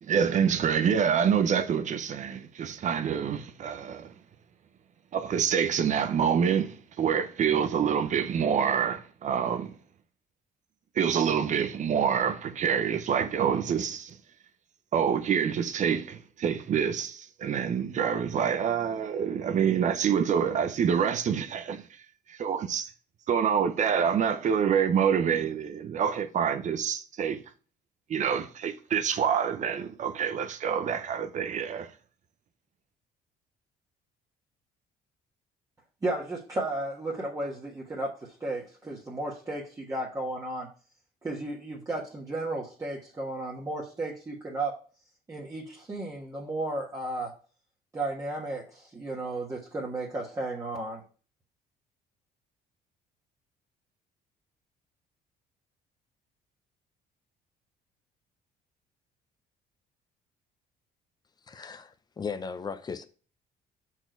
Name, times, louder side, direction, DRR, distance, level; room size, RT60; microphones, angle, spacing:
voice 1, 0.0-4.1 5.1-9.7 11.0-14.2 14.9-21.9 22.3-22.9 23.3-27.4 28.1-31.9, right 7 dB, 45° right, 0.8 m, -26 dB
voice 2, 36.0-40.7 41.2-44.7 45.3-47.3 47.9-51.0, right 2 dB, 20° right, 1.5 m, -34 dB
voice 3, 61.5-63.0, left 5 dB, 25° left, 0.7 m, -37 dB
6.1 x 4.6 x 4.6 m
cardioid pair, 110°, 17 cm